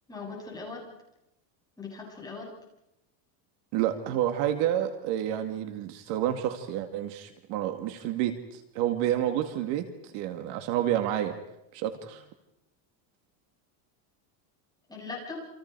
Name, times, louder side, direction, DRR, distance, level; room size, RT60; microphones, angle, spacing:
voice 1, 0.1-0.9 1.8-2.5 14.9-15.5, left 4 dB, 10° left, -3 dB, 8.0 m, -39 dB
voice 2, 3.7-11.4 11.7-12.2, right 11 dB, 55° right, 7 dB, 2.3 m, -29 dB
29.5 x 27.0 x 4.7 m, 0.84 s
cardioid pair, 160°, 50 cm